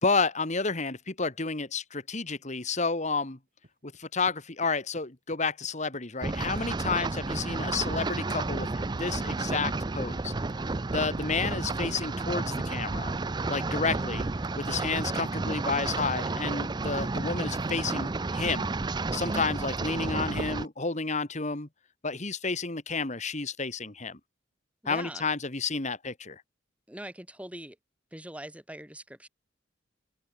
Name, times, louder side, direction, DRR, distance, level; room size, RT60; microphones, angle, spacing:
voice 1, 0.0-3.4 3.8-10.3 10.9-13.1 13.5-14.3 14.6-18.7 19.1-21.7 22.0-24.2 24.9-26.4, left 4 dB, 40° left, 1.9 m, -31 dB
sound 1, 3.6-4.4 4.6-5.0 5.3-8.0, right 1 dB, 50° right, 5.2 m, -52 dB
sound 2, 6.2-20.7, right 3 dB, 25° right, 0.5 m, -31 dB
voice 2, 13.7-14.1 24.8-25.2 26.9-27.7 28.1-29.3, right 1 dB, 5° right, 3.3 m, -42 dB
open air
head